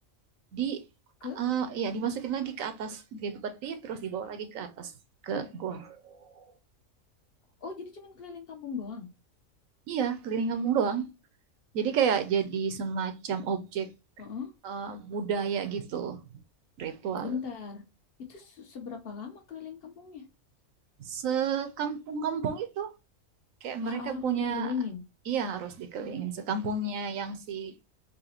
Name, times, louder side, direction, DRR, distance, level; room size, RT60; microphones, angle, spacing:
voice 1, 1.4-4.9 5.2-6.4 9.9-11.0 11.7-13.9 14.6-16.2 16.8-17.4 21.0-22.9 23.6-24.7 25.3-27.7, right 6 dB, 75° right, 1.1 m, -31 dB
voice 2, 7.6-9.1 14.2-14.5 17.2-17.8 18.3-20.2 23.8-25.0, left 6 dB, 50° left, 1.1 m, -38 dB
4.0 x 3.0 x 2.9 m
omnidirectional pair, 1.4 m